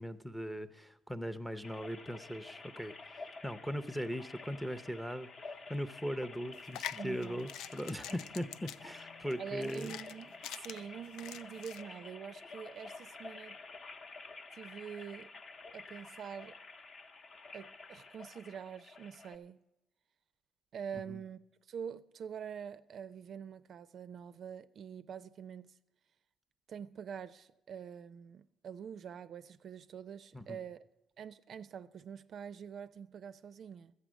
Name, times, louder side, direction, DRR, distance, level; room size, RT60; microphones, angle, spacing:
voice 1, 0.0-5.3 5.7-10.0 20.9-21.2 30.3-30.6, equal, ahead, 0.5 m, -39 dB
sound 1, 1.6-19.4, left 3 dB, 40° left, 0.8 m, -50 dB
sound 2, 6.5-11.8, left 10 dB, 85° left, 0.4 m, -46 dB
voice 2, 7.0-7.5 8.1-8.2 9.4-13.6 14.5-15.3 15.7-16.6 17.5-19.6 20.7-21.4 21.7-25.7 26.7-30.8 31.2-33.9, right 7 dB, 50° right, 0.4 m, -45 dB
13.0 x 8.5 x 6.2 m
cardioid pair, 125°, 0 cm